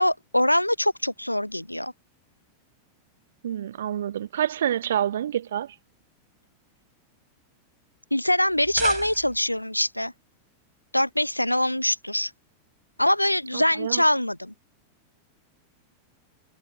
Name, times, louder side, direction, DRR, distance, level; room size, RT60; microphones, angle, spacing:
voice 1, 0.0-1.9 8.1-10.1 10.9-12.3 13.0-14.5, left 1 dB, 90° left, 0.5 m, -23 dB
voice 2, 3.4-5.7 13.5-14.0, right 10 dB, 60° right, 1.4 m, -27 dB
sound 1, 8.5-9.6, right 12 dB, 30° right, 4.6 m, -36 dB
figure-of-eight pair, 90°, 0 cm